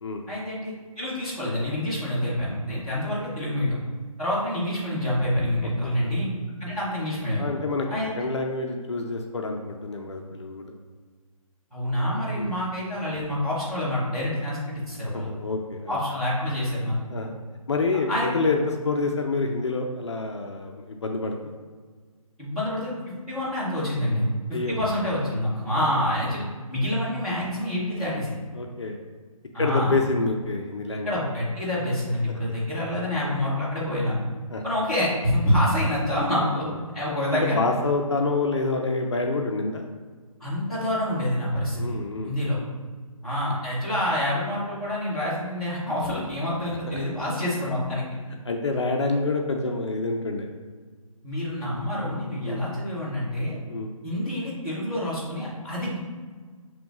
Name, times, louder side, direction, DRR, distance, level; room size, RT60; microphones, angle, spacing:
voice 1, 0.3-3.8 4.2-6.3 6.6-7.4 7.9-8.1 11.7-15.3 15.9-17.0 18.1-18.3 22.4-22.9 23.3-24.3 24.7-26.4 26.7-28.3 29.5-29.9 31.0-34.2 34.6-36.6 36.9-37.6 40.4-41.8 42.2-42.6 43.2-48.0 51.2-53.6 54.0-56.0, left 1 dB, ahead, -15 dB, 0.7 m, -27 dB
voice 2, 7.4-7.9 8.2-10.7 12.3-12.5 15.0-16.0 17.1-17.4 17.7-21.3 24.5-24.8 25.8-25.9 28.5-29.0 29.6-31.2 32.3-32.4 32.9-33.0 34.5-34.6 36.6-36.7 37.6-39.9 41.7-42.3 46.9-47.0 48.5-50.5 52.4-52.6 53.7-53.9, left 3 dB, 50° left, 3 dB, 0.4 m, -27 dB
6.7 x 3.0 x 2.3 m, 1.5 s
hypercardioid pair, 165°, 19 cm